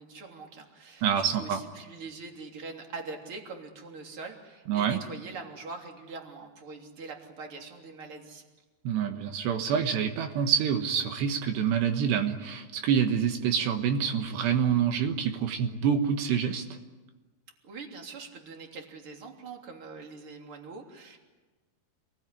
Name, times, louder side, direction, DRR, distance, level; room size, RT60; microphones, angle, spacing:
voice 1, 0.0-8.4 17.6-21.2, right 4 dB, 35° right, 2 dB, 3.7 m, -43 dB
voice 2, 1.0-1.6 4.7-5.0 8.9-16.8, right 8 dB, 80° right, 6 dB, 3.5 m, -27 dB
28.5 x 20.5 x 9.9 m, 1.2 s
omnidirectional pair, 4.9 m